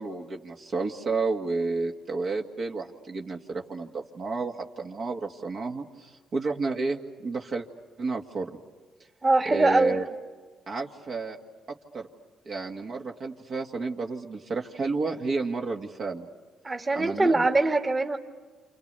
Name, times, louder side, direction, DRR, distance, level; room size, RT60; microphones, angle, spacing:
voice 1, 0.0-7.7 8.0-8.6 9.5-10.1 10.7-11.4 11.7-12.1 12.5-16.3 16.9-17.5, right 3 dB, 55° right, 2 dB, 2.1 m, -31 dB
voice 2, 9.2-10.0 16.6-18.2, right 2 dB, 25° right, 4 dB, 2.1 m, -22 dB
29.0 x 27.5 x 6.9 m, 1.4 s
cardioid pair, 90°, 0 cm